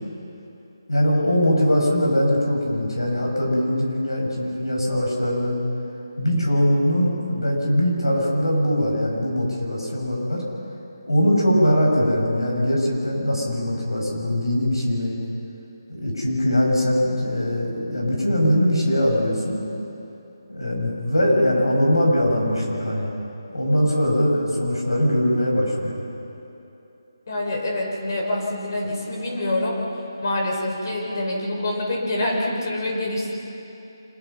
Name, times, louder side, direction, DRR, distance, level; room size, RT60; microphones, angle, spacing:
voice 1, 0.9-5.6 6.2-10.4 11.1-15.2 15.9-19.6 20.5-23.1 23.5-26.0, equal, 90° left, -1 dB, 7.8 m, -21 dB
voice 2, 27.3-29.8 30.2-33.3, left 1 dB, 50° left, 0 dB, 5.8 m, -26 dB
26.5 x 22.0 x 5.9 m, 2.9 s
figure-of-eight pair, 160°, 2 cm